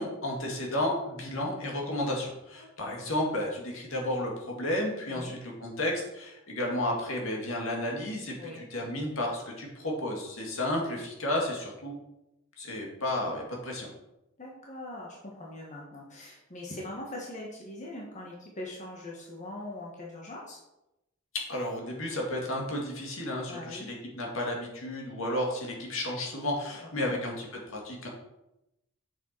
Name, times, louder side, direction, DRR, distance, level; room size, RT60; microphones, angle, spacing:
voice 1, 0.0-11.9 12.6-13.9 21.3-28.1, left 1 dB, 65° left, -1 dB, 2.4 m, -32 dB
voice 2, 2.6-2.9 5.1-5.4 8.4-8.6 14.4-20.6 23.5-23.9 26.8-27.2, left 1 dB, 35° left, -3 dB, 1.5 m, -42 dB
7.5 x 6.9 x 4.6 m, 0.90 s
head